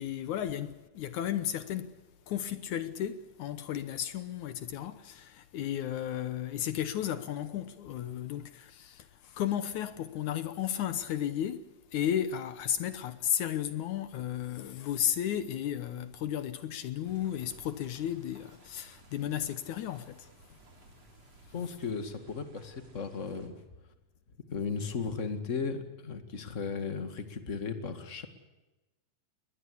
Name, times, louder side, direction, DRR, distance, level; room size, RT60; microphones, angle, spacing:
voice 1, 0.0-20.3, left 10 dB, 70° left, 2.2 m, -34 dB
sound 1, 17.0-23.5, right 3 dB, 50° right, 4.3 m, -57 dB
voice 2, 21.5-23.6 24.5-28.3, left 5 dB, 25° left, 1.8 m, -36 dB
21.0 x 20.0 x 8.5 m
omnidirectional pair, 3.9 m